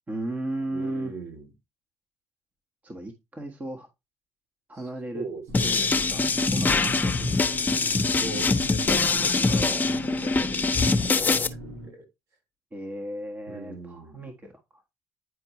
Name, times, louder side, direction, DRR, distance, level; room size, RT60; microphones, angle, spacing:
voice 1, 0.1-1.1 2.8-3.9 4.7-5.2 5.6-7.3 7.6-7.7 12.7-14.9, right 1 dB, 25° right, 1.5 m, -35 dB
voice 2, 0.7-1.5 5.1-5.9 6.7-7.2 7.8-12.1 13.5-14.2, right 3 dB, 50° right, 2.7 m, -40 dB
sound 1, 5.5-11.5, left 3 dB, 30° left, 1.0 m, -23 dB
sound 2, 5.5-11.9, equal, 80° right, 3.8 m, -41 dB
9.7 x 4.5 x 3.1 m
hypercardioid pair, 60°, 6 cm